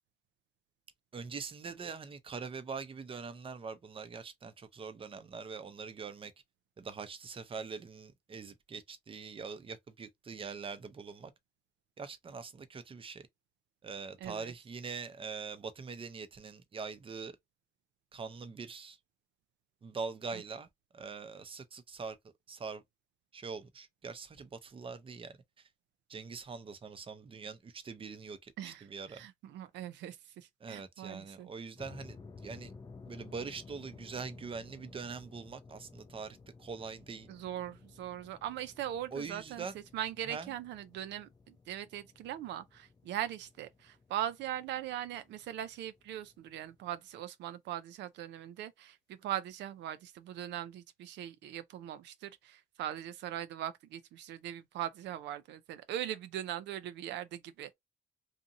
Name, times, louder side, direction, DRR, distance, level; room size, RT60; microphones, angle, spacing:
voice 1, 1.1-6.3 6.8-11.3 12.0-13.2 13.8-17.4 18.1-19.0 19.8-20.7 20.9-22.2 22.5-22.8 23.3-25.7 26.1-29.2 30.6-32.2 32.4-32.7 33.1-37.3 39.1-39.7 40.3-40.5, right 5 dB, 30° right, 0.6 m, -43 dB
voice 2, 14.2-14.5 20.3-20.4 28.6-31.5 37.3-57.7, right 11 dB, 80° right, 0.4 m, -40 dB
sound 1, 31.8-47.0, left 4 dB, 20° left, 0.4 m, -55 dB
2.7 x 2.5 x 2.5 m
cardioid pair, 90°, 18 cm